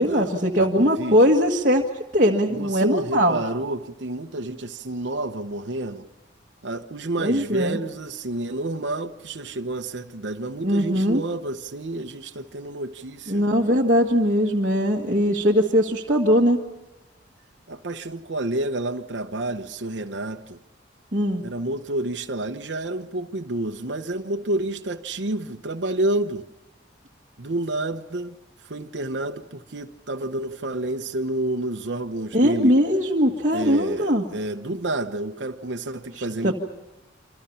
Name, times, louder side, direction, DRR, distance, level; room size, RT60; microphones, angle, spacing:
voice 1, 0.0-1.8 2.1-3.4 7.2-7.8 10.6-11.2 13.3-16.6 21.1-21.4 32.3-34.2 36.4-36.5, equal, 45° right, 1.8 m, -20 dB
voice 2, 0.6-1.2 2.5-6.1 6.6-13.5 17.7-20.6 21.4-26.5 27.4-28.4 28.6-32.8 33.3-36.5, right 2 dB, 70° right, 1.0 m, -29 dB
28.0 x 26.0 x 5.7 m
head